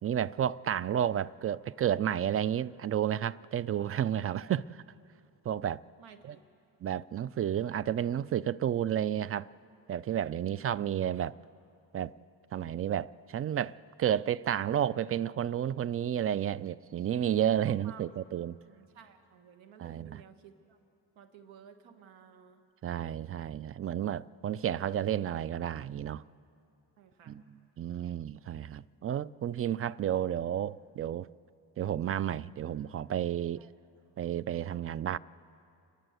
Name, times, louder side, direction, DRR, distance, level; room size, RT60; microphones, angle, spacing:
voice 1, 0.0-4.8 5.4-5.8 6.3-6.4 6.8-9.5 9.9-11.4 11.9-12.1 12.5-18.6 19.8-20.1 22.8-26.2 27.3-27.4 27.8-31.3 31.8-33.7 34.2-35.2, right 10 dB, 35° right, 0.4 m, -31 dB
voice 2, 6.0-6.4 10.3-10.6 17.6-18.1 18.7-20.8 21.1-22.6 27.0-27.4 33.6-33.7, right 8 dB, 90° right, 1.5 m, -54 dB
29.0 x 11.0 x 8.0 m
cardioid pair, 80°, 45 cm